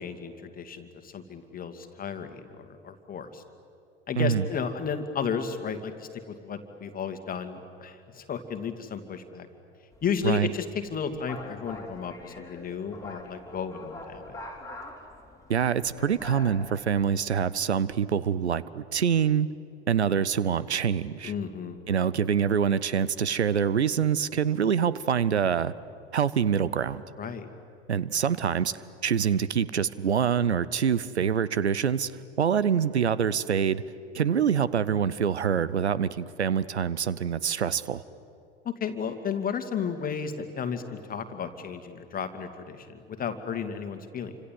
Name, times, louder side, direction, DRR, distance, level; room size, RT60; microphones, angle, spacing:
voice 1, 0.0-3.4 4.1-9.5 10.0-14.4 21.2-21.8 27.2-27.5 38.6-44.3, left 6 dB, 25° left, 7 dB, 2.2 m, -33 dB
voice 2, 4.2-4.5 10.2-10.5 15.5-19.5 19.9-21.3 21.9-25.7 26.1-27.0 27.9-28.7 29.0-32.1 32.4-33.8 34.1-38.0, right 7 dB, 80° right, 18 dB, 0.8 m, -25 dB
sound 1, 9.9-17.4, left 2 dB, 10° left, 3.6 m, -44 dB
29.0 x 26.0 x 7.7 m, 2.5 s
figure-of-eight pair, 75°, 33 cm